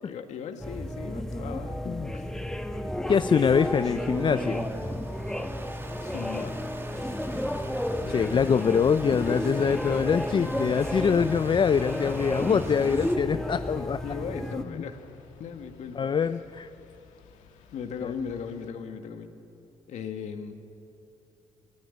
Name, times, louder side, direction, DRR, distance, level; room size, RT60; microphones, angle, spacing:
voice 1, 0.0-1.8 2.1-2.3 6.0-6.6 8.0-8.2 9.1-9.2 10.7-10.8 14.0-15.0 15.4-16.3 17.7-19.3 19.9-20.5, left 6 dB, 75° left, 7 dB, 1.6 m, -37 dB
sound 1, 0.6-14.6, left 1 dB, 5° left, 1.4 m, -32 dB
voice 2, 3.1-4.6 8.1-14.0 16.0-16.7 18.0-18.1, left 6 dB, 40° left, 12 dB, 0.5 m, -24 dB
Stream, 3.5-13.2, right 1 dB, 20° right, 2.2 m, -41 dB
sound 2, 7.2-18.7, left 6 dB, 90° left, 1.7 m, -52 dB
19.0 x 17.0 x 9.8 m, 2.8 s
cardioid pair, 75°, 12 cm